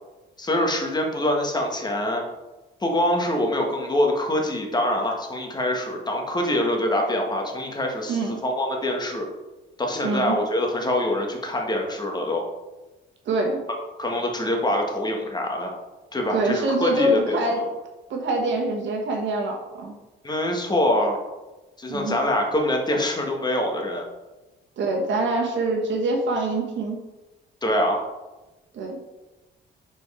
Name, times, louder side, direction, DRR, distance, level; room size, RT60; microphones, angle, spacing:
voice 1, 0.4-2.2 2.8-9.3 9.8-12.4 14.0-15.7 16.1-17.6 20.2-21.2 21.8-24.0 27.6-28.0, left 1 dB, 20° left, 1 dB, 1.4 m, -24 dB
voice 2, 10.0-10.4 13.2-13.6 16.3-17.7 18.1-19.9 21.9-22.2 24.8-27.0 28.7-29.0, right 2 dB, 70° right, 1 dB, 1.5 m, -25 dB
5.5 x 4.4 x 4.8 m, 1.1 s
cardioid pair, 90°, 20 cm